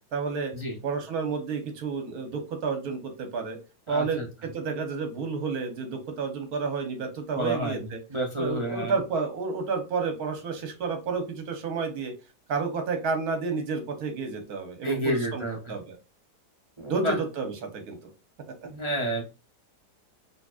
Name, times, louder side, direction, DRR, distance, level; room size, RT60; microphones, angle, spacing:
voice 1, 0.1-0.5 0.8-3.6 3.9-8.0 8.4-12.1 12.5-15.4 15.7-16.0 16.9-18.0, right 4 dB, 70° right, 6 dB, 1.4 m, -30 dB
voice 2, 3.9-4.3 7.3-8.9 14.8-15.7 16.8-17.2 18.6-19.2, right 1 dB, 40° right, -1 dB, 0.4 m, -30 dB
4.0 x 2.7 x 2.4 m, 0.30 s
omnidirectional pair, 1.7 m